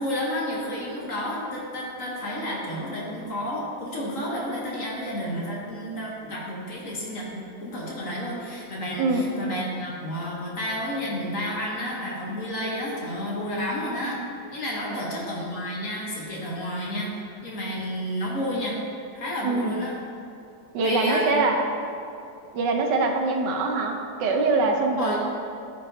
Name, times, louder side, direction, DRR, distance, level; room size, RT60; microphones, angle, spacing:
voice 1, 0.0-14.2 14.5-18.8 19.1-19.9 20.8-21.4 25.0-25.2, equal, 50° left, -4 dB, 1.2 m, -31 dB
voice 2, 9.0-9.3 14.8-15.2 19.4-19.8 20.7-21.6 22.5-25.2, right 3 dB, 75° right, 2 dB, 1.3 m, -24 dB
12.5 x 4.3 x 2.6 m, 2.6 s
omnidirectional pair, 2.0 m